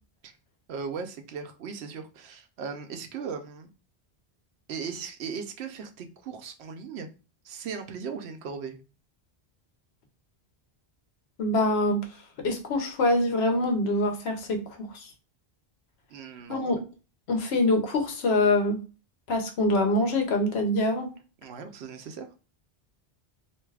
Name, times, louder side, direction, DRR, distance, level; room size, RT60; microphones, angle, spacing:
voice 1, 0.7-3.7 4.7-7.1 7.4-8.8 16.1-16.8 21.4-22.3, right 6 dB, 90° right, 7 dB, 0.8 m, -38 dB
voice 2, 11.4-12.0 12.4-15.1 16.5-16.8 17.3-18.8 19.3-21.1, left 1 dB, 80° left, 4 dB, 1.0 m, -25 dB
2.6 x 2.3 x 3.2 m, 0.34 s
omnidirectional pair, 1.1 m